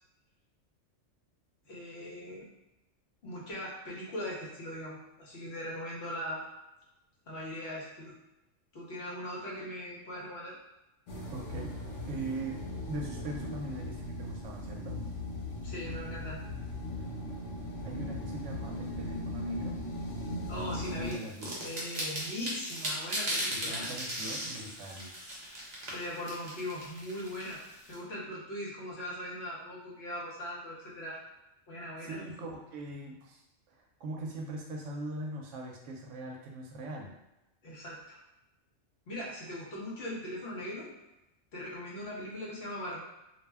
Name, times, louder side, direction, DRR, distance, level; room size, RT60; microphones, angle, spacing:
voice 1, 1.6-2.5 3.2-6.4 7.3-8.1 8.7-10.6 15.6-16.4 20.5-21.2 21.6-23.9 25.9-27.6 27.9-31.2 31.7-32.2 37.6-38.2 39.1-40.9 41.5-43.0, left 1 dB, 60° left, -4 dB, 0.9 m, -40 dB
sound 1, 11.1-21.1, left 1 dB, 80° left, 1.0 m, -38 dB
voice 2, 11.3-11.7 12.1-12.6 12.9-15.0 17.8-19.8 20.5-21.7 23.5-25.1 32.0-33.4 33.7-37.1, right 2 dB, 75° right, 0 dB, 0.9 m, -41 dB
sound 2, 21.1-27.9, right 1 dB, 40° right, 0.7 m, -37 dB
2.4 x 2.1 x 3.3 m, 0.93 s
omnidirectional pair, 1.3 m